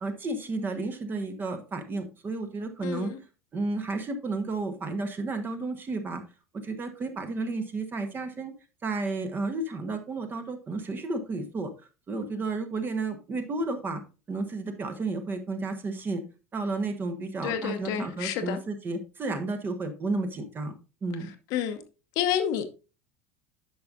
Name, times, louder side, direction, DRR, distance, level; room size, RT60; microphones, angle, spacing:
voice 1, 0.0-3.1 3.5-6.2 6.5-8.5 8.8-11.7 12.1-14.0 14.3-16.2 16.5-20.7 21.0-21.3, right 3 dB, 25° right, 1.2 m, -32 dB
voice 2, 2.8-3.2 17.4-18.6 21.5-21.8 22.2-22.6, left 9 dB, 50° left, 0.9 m, -29 dB
10.0 x 5.9 x 2.6 m
figure-of-eight pair, 75°, 8 cm